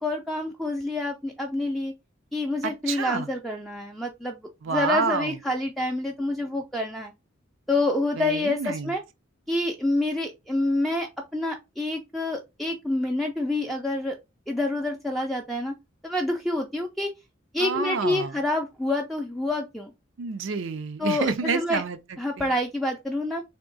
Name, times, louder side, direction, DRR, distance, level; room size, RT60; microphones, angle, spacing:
voice 1, 0.0-1.9 2.3-4.4 4.7-7.1 7.7-9.0 9.5-11.1 11.3-14.2 14.5-15.7 16.0-17.1 17.5-19.9 21.0-21.8 22.2-23.4, left 2 dB, ahead, 0.4 m, -27 dB
voice 2, 2.6-3.3 4.6-5.4 8.2-8.9 17.6-18.4 20.2-22.6, right 5 dB, 70° right, 0.5 m, -29 dB
3.6 x 2.8 x 3.9 m
head